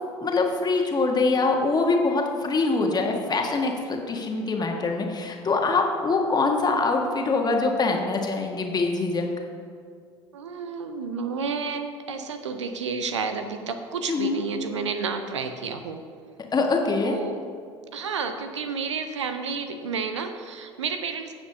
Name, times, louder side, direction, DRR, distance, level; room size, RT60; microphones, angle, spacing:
voice 1, 0.2-9.3 14.1-14.4 16.5-17.2, left 3 dB, 25° left, 2 dB, 1.4 m, -24 dB
voice 2, 10.3-16.0 17.0-17.4 17.9-21.3, right 5 dB, 80° right, 8 dB, 0.6 m, -31 dB
16.0 x 7.0 x 2.8 m, 2.2 s
figure-of-eight pair, 65°, 15 cm